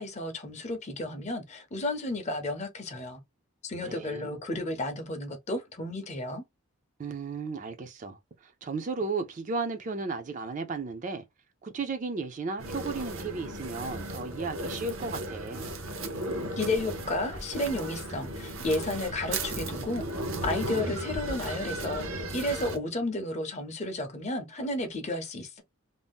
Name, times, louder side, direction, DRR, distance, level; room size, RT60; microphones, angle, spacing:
voice 1, 0.0-3.2 3.6-6.4 16.6-20.1 20.4-25.6, left 2 dB, 30° left, 0.5 m, -32 dB
voice 2, 3.8-4.4 7.0-11.2 11.6-15.7, right 4 dB, 35° right, 0.4 m, -34 dB
sound 1, 12.6-22.8, right 1 dB, 70° right, 0.7 m, -35 dB
2.6 x 2.0 x 3.4 m
head